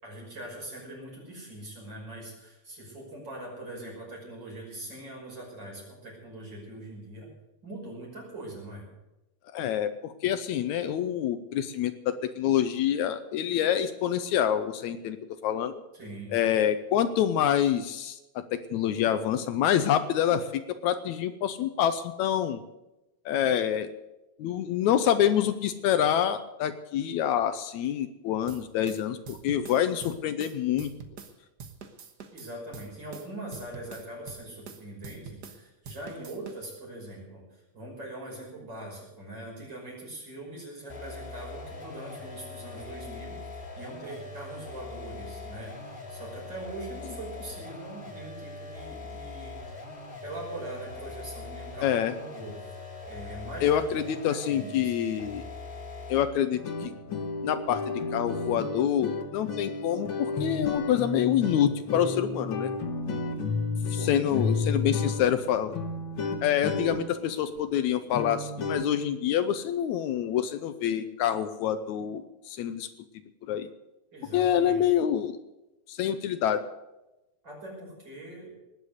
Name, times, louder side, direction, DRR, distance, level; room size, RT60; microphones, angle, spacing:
voice 1, 0.0-7.3 7.6-8.9 15.9-16.5 32.3-49.6 50.2-52.8 53.1-54.0 54.3-55.4 63.9-64.4 74.1-74.8 77.4-78.6, right 1 dB, 35° right, -3 dB, 6.5 m, -42 dB
voice 2, 9.5-15.2 15.4-15.7 16.3-22.6 23.3-23.9 24.4-30.9 51.8-52.1 53.6-55.4 56.1-56.9 57.4-62.7 64.0-65.7 66.4-72.9 73.5-73.7 74.3-75.4 75.9-76.7, left 10 dB, 80° left, 11 dB, 2.0 m, -27 dB
sound 1, 28.5-31.3 31.6-35.6 35.8-36.8, right 5 dB, 55° right, 1.1 m, -45 dB
sound 2, 40.9-56.4, left 3 dB, 20° left, 2.7 m, -42 dB
sound 3, 56.6-68.8, left 4 dB, 50° left, 1.7 m, -32 dB
19.5 x 8.2 x 8.1 m, 0.99 s
omnidirectional pair, 3.5 m